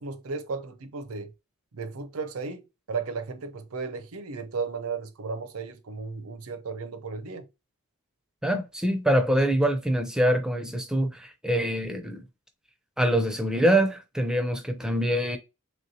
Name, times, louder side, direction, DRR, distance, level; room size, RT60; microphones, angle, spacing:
voice 1, 0.0-1.3 1.7-7.5, right 4 dB, 75° right, 0.6 m, -35 dB
voice 2, 8.4-12.3 13.0-15.4, right 1 dB, 5° right, 0.5 m, -24 dB
3.2 x 3.0 x 2.7 m
head